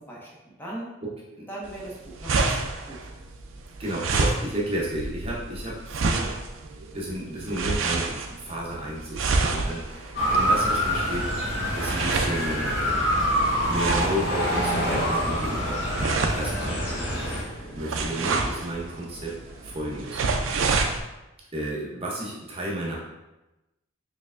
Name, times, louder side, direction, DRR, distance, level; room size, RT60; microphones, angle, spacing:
voice 1, 0.1-0.9 1.5-2.6 2.9-3.1, right 1 dB, 10° left, -6 dB, 0.6 m, -39 dB
voice 2, 1.0-1.5 3.8-6.3 6.9-11.3 11.7-15.8 16.4-19.3 19.6-20.2 21.5-23.0, right 1 dB, 30° right, -4 dB, 0.7 m, -32 dB
sound 1, 1.6-21.0, right 3 dB, 75° right, 0.4 m, -29 dB
sound 2, 9.8-20.5, equal, 50° left, 1.0 m, -36 dB
Motor vehicle (road) / Siren, 10.1-17.4, equal, 65° left, 1.2 m, -26 dB
4.4 x 3.2 x 2.5 m, 0.99 s
head